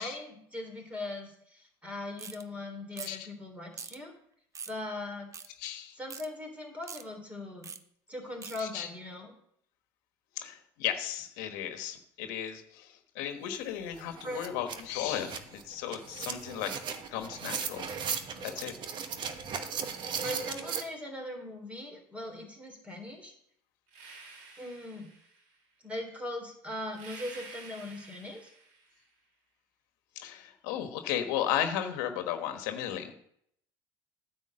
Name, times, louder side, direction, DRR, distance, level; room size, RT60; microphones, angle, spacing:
voice 1, 0.0-4.1 4.7-5.3 5.9-7.7 8.1-9.3 14.2-14.4 20.2-23.3 24.6-25.1 25.8-28.5, left 1 dB, 10° right, 2 dB, 3.4 m, -40 dB
sound 1, 2.2-2.4 2.9-3.2 3.7-4.0 4.5-4.8 5.3-5.5 6.1-6.3 6.8-7.0 7.6-7.8 8.4-8.6, right 6 dB, 30° right, 0.7 m, -43 dB
voice 2, 5.6-6.0 8.6-8.9 10.4-16.7 17.1-17.9 18.4-18.7 30.2-33.1, left 10 dB, 85° left, 7 dB, 1.2 m, -35 dB
sound 2, 13.5-13.6 13.9-20.8, right 6 dB, 45° right, 1.1 m, -37 dB
sound 3, 23.9-25.5 26.9-29.0, right 3 dB, 85° right, 2.7 m, -50 dB
9.5 x 4.7 x 7.6 m, 0.69 s
supercardioid pair, 105°, 10 cm